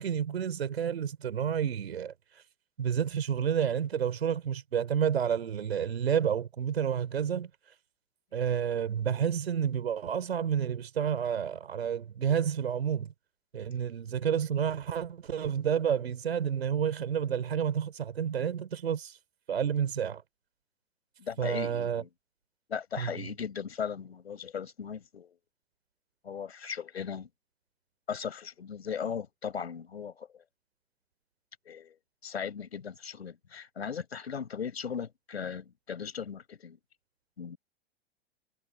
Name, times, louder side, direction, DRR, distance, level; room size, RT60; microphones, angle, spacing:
voice 1, 0.0-2.1 2.8-7.5 8.3-13.1 13.5-19.2 19.5-20.2 21.4-22.0 23.0-23.2, right 8 dB, 70° right, 4.2 m, -30 dB
voice 2, 21.2-22.1 22.7-25.4 26.2-27.3 28.1-30.4 31.7-32.0 32.2-36.8 37.4-37.6, left 7 dB, 75° left, 5.9 m, -38 dB
figure-of-eight pair, 100°, 32 cm